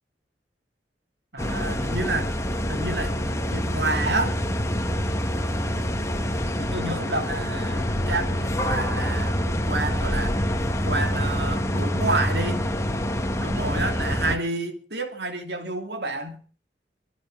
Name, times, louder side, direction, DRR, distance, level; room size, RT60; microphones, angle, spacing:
voice 1, 1.3-2.3 2.7-4.4 6.6-10.4 10.8-12.7 13.4-16.4, right 2 dB, 70° right, 2.7 m, -29 dB
sound 1, 1.4-14.4, equal, 15° left, 1.5 m, -26 dB
24.5 x 10.0 x 5.4 m
head